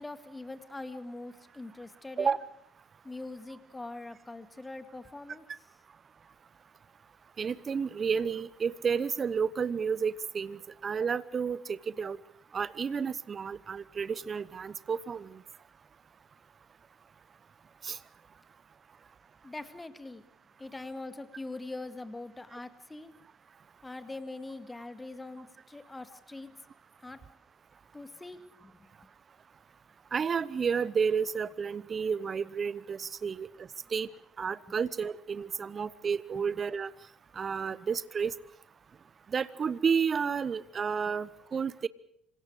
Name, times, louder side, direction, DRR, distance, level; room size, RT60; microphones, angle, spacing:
voice 1, 0.0-2.3 3.0-5.4 19.4-20.2 20.6-23.1 23.8-26.5 27.0-27.2 27.9-28.9, left 2 dB, 15° left, 10 dB, 2.0 m, -43 dB
voice 2, 7.4-12.2 12.5-15.4 17.8-18.0 30.1-33.5 33.9-34.1 34.4-36.9 37.4-38.3 39.3-41.9, right 6 dB, 35° right, 18 dB, 0.9 m, -31 dB
27.0 x 26.5 x 4.9 m, 0.69 s
hypercardioid pair, 55°, 0 cm